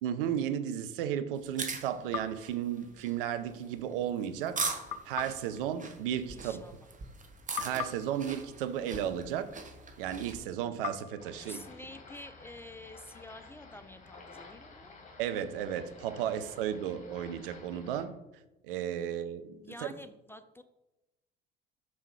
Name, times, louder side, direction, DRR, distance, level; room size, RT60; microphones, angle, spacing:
voice 1, 0.0-6.6 7.6-9.6 10.0-11.6 15.2-18.2 18.6-19.9, right 10 dB, 65° right, 11 dB, 0.6 m, -34 dB
sound 1, 1.4-10.4, right 4 dB, 25° right, 1.2 m, -41 dB
sound 2, 2.1-3.5 4.9-7.2 7.5-9.8 10.8-12.7, left 8 dB, 65° left, 0.6 m, -44 dB
voice 2, 6.3-6.9 11.4-15.0 19.6-20.6, left 1 dB, 10° left, 10 dB, 0.4 m, -49 dB
sound 3, 11.2-18.1, left 3 dB, 25° left, 1.7 m, -52 dB
6.0 x 5.5 x 4.7 m, 0.99 s
figure-of-eight pair, 55°, 29 cm